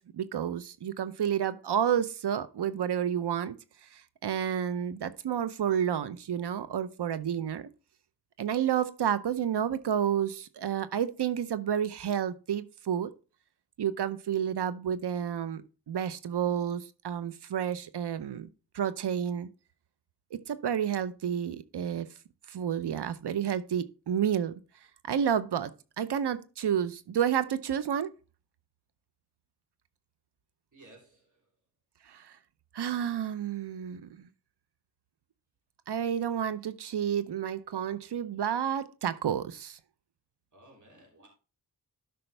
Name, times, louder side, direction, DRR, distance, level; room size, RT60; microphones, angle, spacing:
voice 1, 0.0-3.5 3.8-7.7 8.4-13.1 13.8-18.5 18.7-19.5 20.3-22.1 22.5-24.6 25.0-28.1 32.1-32.4 32.7-34.3 35.9-39.8, right 9 dB, 85° right, 0.7 m, -30 dB
voice 2, 30.7-31.5 40.5-41.3, right 2 dB, 50° right, 3.1 m, -56 dB
12.0 x 5.3 x 3.3 m
wide cardioid pair, 85°, 40 cm